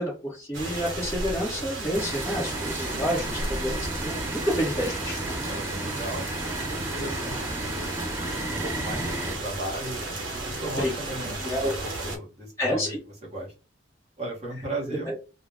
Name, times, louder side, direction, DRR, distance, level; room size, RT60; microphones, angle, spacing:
voice 1, 0.0-5.2 10.8-10.9 11.4-11.8 12.6-13.0 14.9-15.1, equal, 15° left, -7 dB, 0.7 m, -29 dB
sound 1, 0.5-12.2, right 2 dB, 80° right, 0.8 m, -34 dB
sound 2, 2.0-9.4, right 1 dB, 10° right, 0.3 m, -34 dB
voice 2, 2.7-3.4 5.5-7.9 8.5-12.9 13.3-13.5 14.2-15.1, right 1 dB, 35° right, -4 dB, 0.9 m, -36 dB
2.4 x 2.0 x 3.3 m, 0.32 s
head